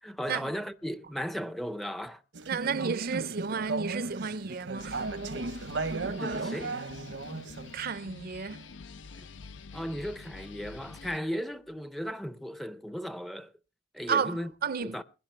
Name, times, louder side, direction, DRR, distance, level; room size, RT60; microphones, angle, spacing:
voice 1, 0.0-2.2 6.0-6.8 9.2-9.3 9.7-13.5 13.9-14.5 14.8-15.0, equal, ahead, 0.5 m, -36 dB
Conversation / Chatter, 2.3-7.7, right 3 dB, 80° right, 1.0 m, -35 dB
voice 2, 2.5-5.0 7.7-8.7 14.1-15.0, right 6 dB, 55° right, 0.6 m, -32 dB
sound 1, 4.8-11.2, left 4 dB, 90° left, 0.6 m, -47 dB
21.5 x 10.0 x 3.3 m
head